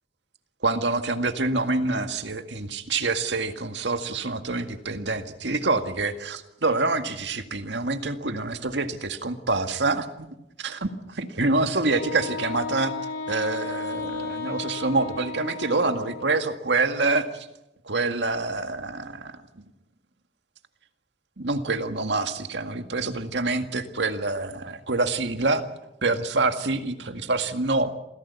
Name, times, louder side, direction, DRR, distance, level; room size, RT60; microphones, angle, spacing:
voice 1, 0.6-10.3 10.6-12.9 13.3-17.5 17.8-19.6 21.4-25.6 26.0-27.9, right 3 dB, 90° right, 7 dB, 2.0 m, -26 dB
Wind instrument woodwind instrument, 11.9-16.5, left 4 dB, 75° left, 4.1 m, -34 dB
27.5 x 16.5 x 8.4 m, 0.90 s
head